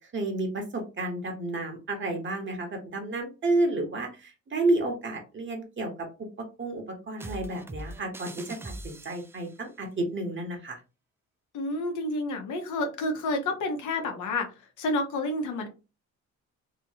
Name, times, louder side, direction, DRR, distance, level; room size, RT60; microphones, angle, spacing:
voice 1, 0.1-6.1 6.4-10.8, right 2 dB, 40° right, 3 dB, 1.1 m, -31 dB
sound 1, 7.2-9.5, right 2 dB, 10° right, 0.3 m, -41 dB
voice 2, 11.5-14.5 14.8-15.7, left 2 dB, 80° left, 5 dB, 0.9 m, -29 dB
2.9 x 2.7 x 2.8 m, 0.30 s
cardioid pair, 90°, 30 cm